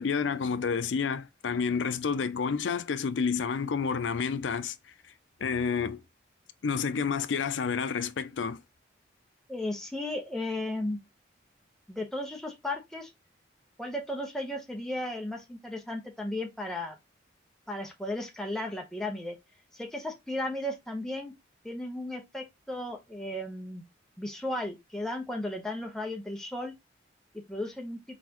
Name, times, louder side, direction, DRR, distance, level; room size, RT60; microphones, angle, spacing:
voice 1, 0.0-4.7 5.4-6.0 6.6-8.6, left 6 dB, 80° left, 0.5 m, -29 dB
voice 2, 9.5-11.0 11.9-13.1 13.8-17.0 17.7-19.4 19.7-21.3 21.6-23.8 24.2-26.7 27.5-28.0, left 1 dB, 5° left, 0.9 m, -35 dB
4.1 x 4.1 x 3.0 m
head